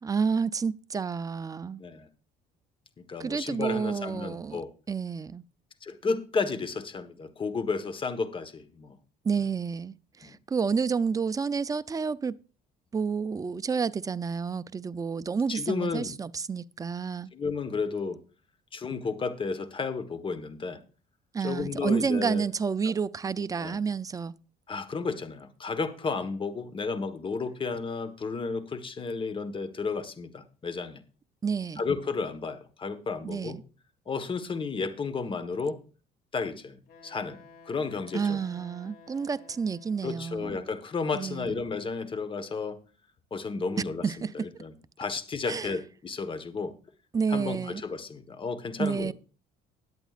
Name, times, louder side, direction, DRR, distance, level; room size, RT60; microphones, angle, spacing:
voice 1, 0.0-1.8 3.2-4.6 4.9-5.4 9.2-12.4 12.9-17.3 21.3-24.3 31.4-31.8 33.2-33.6 38.1-40.7 41.1-41.5 44.0-44.3 45.5-45.8 47.1-47.8 48.8-49.1, right 5 dB, 20° right, 0.5 m, -30 dB
voice 2, 3.1-4.7 5.8-9.0 10.2-10.4 15.5-16.1 17.3-18.2 18.7-20.8 21.4-22.4 23.6-23.8 24.7-31.0 31.8-33.6 34.1-35.8 36.3-37.4 37.7-38.4 40.0-42.8 43.3-46.7 47.3-49.1, left 4 dB, 30° left, 1.3 m, -32 dB
Wind instrument woodwind instrument, 36.9-40.3, left 4 dB, 70° left, 3.2 m, -53 dB
20.5 x 8.2 x 2.5 m
cardioid pair, 110°, 17 cm